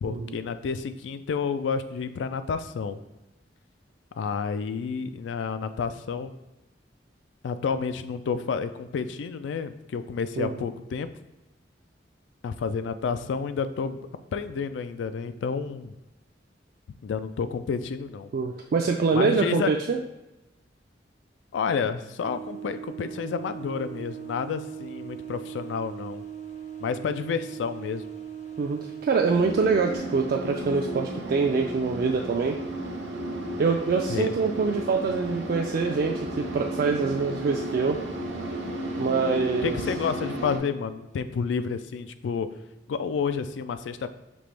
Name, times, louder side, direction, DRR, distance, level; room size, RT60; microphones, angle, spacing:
voice 1, 0.0-3.0 4.1-6.3 7.4-11.1 12.4-14.0 14.3-15.9 17.0-18.3 19.1-19.7 21.5-26.2 26.8-28.0 34.1-34.3 39.6-42.5 42.9-44.1, left 5 dB, 85° left, 11 dB, 0.3 m, -30 dB
voice 2, 10.4-10.7 18.3-20.0 28.6-32.6 33.6-38.0 39.0-39.8, right 4 dB, 55° right, 2 dB, 0.3 m, -25 dB
sound 1, 22.2-30.0, right 9 dB, 40° left, 0.7 m, -39 dB
sound 2, 29.3-40.6, right 1 dB, 85° right, 0.8 m, -34 dB
5.3 x 2.9 x 3.2 m, 0.97 s
head